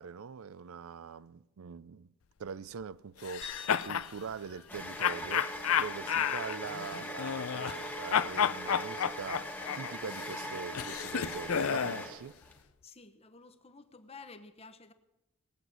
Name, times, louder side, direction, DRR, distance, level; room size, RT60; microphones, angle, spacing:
voice 1, 0.0-2.1 2.4-9.5 9.7-12.3, right 6 dB, 70° right, 0.4 m, -43 dB
sound 1, 3.2-4.1 5.0-7.8 8.1-12.0, left 8 dB, 70° left, 0.5 m, -31 dB
sound 2, 3.4-5.8, left 3 dB, 50° right, 2.2 m, -51 dB
sound 3, 3.9-12.6, equal, 10° left, 1.3 m, -41 dB
voice 2, 12.8-14.9, left 4 dB, 25° left, 0.9 m, -52 dB
19.0 x 8.0 x 7.6 m
head